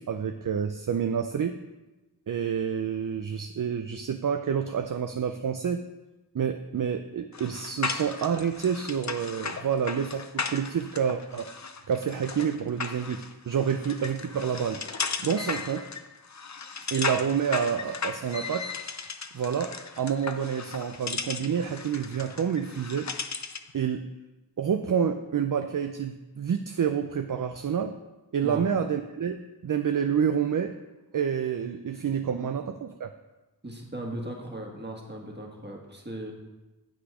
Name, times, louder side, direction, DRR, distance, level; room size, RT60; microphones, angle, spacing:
voice 1, 0.0-1.6 2.3-5.9 6.3-14.8 15.2-15.9 16.9-18.7 19.3-23.1 23.7-24.1 24.6-28.0 28.3-30.8 31.1-33.1, right 7 dB, 55° right, 7 dB, 0.5 m, -28 dB
sound 1, 7.3-23.7, left 5 dB, 45° left, 0.6 m, -36 dB
voice 2, 33.6-36.3, right 1 dB, 25° right, 0 dB, 1.7 m, -37 dB
8.0 x 6.2 x 4.8 m, 1.1 s
wide cardioid pair, 45°, 40 cm